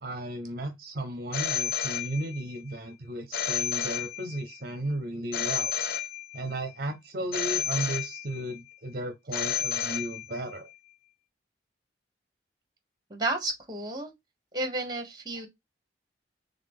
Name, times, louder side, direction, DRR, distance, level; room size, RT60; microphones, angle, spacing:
voice 1, 0.0-5.7 6.3-10.7, right 1 dB, 55° right, 0.7 m, -34 dB
Telephone, 1.3-2.6 3.3-4.6 5.3-6.6 7.3-8.6 9.3-10.6, left 8 dB, 60° left, 0.4 m, -31 dB
voice 2, 13.1-14.1 14.5-15.5, right 2 dB, 25° right, 1.3 m, -32 dB
3.9 x 3.4 x 3.5 m
head